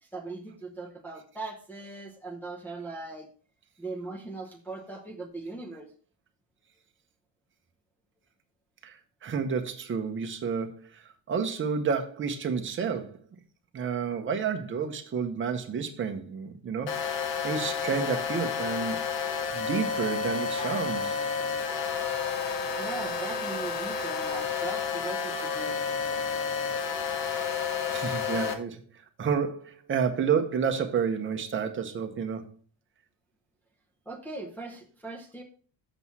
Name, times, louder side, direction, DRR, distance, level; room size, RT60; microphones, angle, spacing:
voice 1, 0.1-3.3 3.8-5.9 22.8-25.8 34.1-35.4, right 3 dB, 5° left, 0.7 m, -39 dB
voice 2, 8.8-10.9 11.3-13.2 13.7-19.0 19.5-21.2 27.9-28.8 29.2-32.5, right 6 dB, 25° right, 0.9 m, -30 dB
sound 1, 16.9-28.5, left 6 dB, 75° left, 1.4 m, -30 dB
7.7 x 6.1 x 4.1 m
cardioid pair, 180°, 45 cm